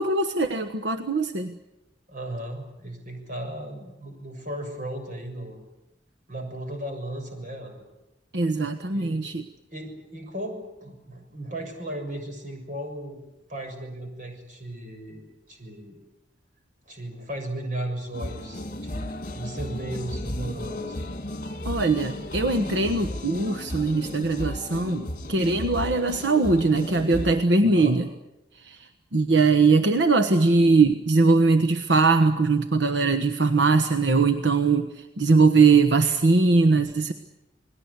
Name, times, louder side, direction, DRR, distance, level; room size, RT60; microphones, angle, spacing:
voice 1, 0.0-1.5 8.3-9.5 21.6-28.1 28.6-28.8 29.1-34.9 35.2-37.1, right 3 dB, 75° right, 8 dB, 1.3 m, -21 dB
voice 2, 2.1-5.6 6.3-7.8 8.9-9.2 9.7-13.2 13.5-15.2 15.5-16.0 16.8-21.0 27.6-28.0, right 1 dB, 45° right, 4 dB, 6.8 m, -36 dB
sound 1, 18.1-27.4, left 1 dB, 45° left, 2.3 m, -34 dB
29.0 x 20.5 x 8.3 m, 0.95 s
head